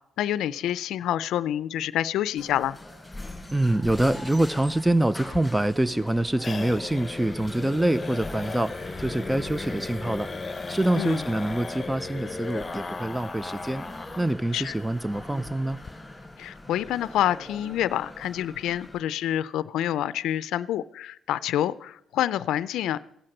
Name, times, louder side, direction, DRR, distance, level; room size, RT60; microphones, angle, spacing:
voice 1, 0.2-2.8 11.0-11.2 14.5-14.7 16.4-23.0, left 12 dB, 85° left, 17 dB, 0.4 m, -27 dB
sound 1, 2.4-19.0, left 1 dB, 10° left, 5.0 m, -42 dB
voice 2, 3.5-10.3 10.7-13.8 14.2-15.8, right 1 dB, 10° right, 16 dB, 0.4 m, -25 dB
sound 2, 5.2-14.3 14.6-14.7 15.0-15.1 15.4-15.9, left 4 dB, 25° left, 1.0 m, -37 dB
16.0 x 7.6 x 6.5 m, 0.75 s
cardioid pair, 90°, 0 cm